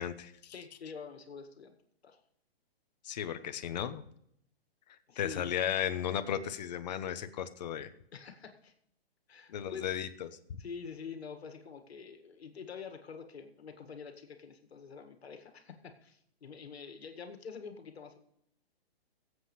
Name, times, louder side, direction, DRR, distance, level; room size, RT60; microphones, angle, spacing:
voice 1, 0.0-0.5 3.0-4.0 5.2-7.9 9.5-10.4, left 9 dB, 45° left, 10 dB, 1.0 m, -35 dB
voice 2, 0.5-1.7 2.0-2.2 5.1-5.6 8.1-8.7 9.3-9.9 10.6-18.2, left 6 dB, 80° left, 7 dB, 1.9 m, -46 dB
20.5 x 8.0 x 3.2 m, 0.72 s
hypercardioid pair, 160°, 31 cm